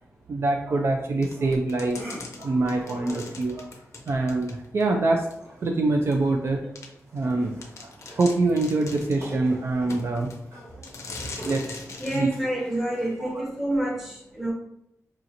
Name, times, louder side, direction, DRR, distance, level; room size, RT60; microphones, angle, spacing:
voice 1, 0.3-3.7 4.1-5.3 5.6-6.6 7.1-10.3 11.4-11.8 12.1-12.3 13.2-13.3, right 2 dB, 50° right, 2 dB, 0.4 m, -25 dB
sound 1, 1.2-4.9 5.3-5.4 6.1-6.2 6.8-6.9 7.3-7.4 7.6-9.3 9.9-10.4 10.8-12.3, left 3 dB, 60° left, 0.5 m, -41 dB
sound 2, 1.8-13.7, right 1 dB, 70° right, 1.5 m, -46 dB
voice 2, 12.0-14.5, right 1 dB, 5° right, -3 dB, 0.9 m, -28 dB
4.8 x 2.8 x 2.6 m, 0.78 s
wide cardioid pair, 165°, 6 cm